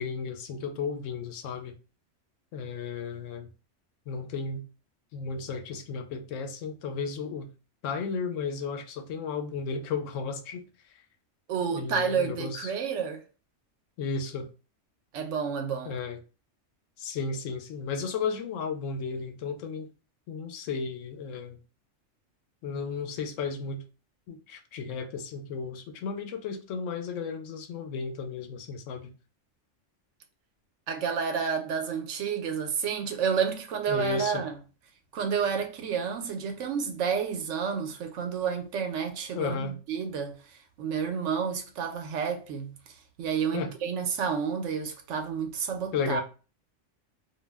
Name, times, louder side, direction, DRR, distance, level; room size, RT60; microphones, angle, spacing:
voice 1, 0.0-1.7 2.5-3.5 4.1-4.6 5.1-7.5 7.8-10.6 11.7-12.7 14.0-14.5 15.9-16.2 17.0-19.9 20.3-21.6 22.6-23.8 24.3-29.1 33.9-34.5 39.3-39.8 43.5-43.7 45.9-46.2, left 5 dB, 90° left, 0.9 m, -34 dB
voice 2, 11.5-13.2 15.1-16.0 30.9-34.6 35.1-42.8 43.2-46.2, right 6 dB, 80° right, 0.9 m, -30 dB
2.5 x 2.1 x 3.3 m
omnidirectional pair, 1.3 m